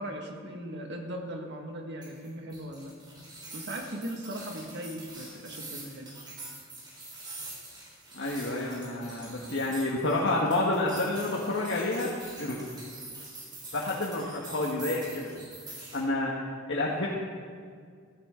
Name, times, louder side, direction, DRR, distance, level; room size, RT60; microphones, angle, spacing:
voice 1, 0.0-2.9 3.5-6.2, right 1 dB, 60° right, 2 dB, 1.9 m, -38 dB
sound 1, 2.0-16.0, right 2 dB, 20° right, 3.6 m, -45 dB
voice 2, 8.1-12.1 12.4-12.6 13.7-15.3 15.9-17.1, left 2 dB, 60° left, -3 dB, 1.5 m, -29 dB
16.0 x 14.5 x 3.8 m, 2.1 s
head